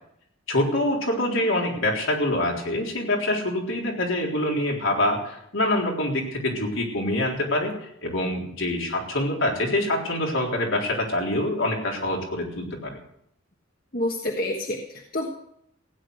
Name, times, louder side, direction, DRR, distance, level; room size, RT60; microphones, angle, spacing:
voice 1, 0.5-7.7 8.0-13.0, left 1 dB, 70° left, -1 dB, 3.8 m, -25 dB
voice 2, 13.9-15.3, left 1 dB, 45° left, 1 dB, 1.5 m, -28 dB
16.0 x 9.9 x 6.5 m, 0.74 s
head